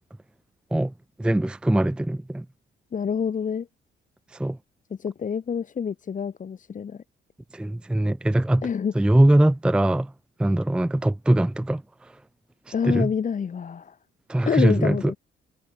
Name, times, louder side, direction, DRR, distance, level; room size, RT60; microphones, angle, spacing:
voice 1, 1.2-2.5 4.3-4.6 7.5-8.7 8.9-10.1 10.4-11.8 12.8-13.1 14.3-15.1, right 1 dB, 5° right, 0.5 m, -21 dB
voice 2, 2.9-3.7 5.0-7.0 8.6-8.9 12.7-13.9 14.4-15.2, left 7 dB, 40° left, 1.4 m, -27 dB
cardioid pair, 90°, 20 cm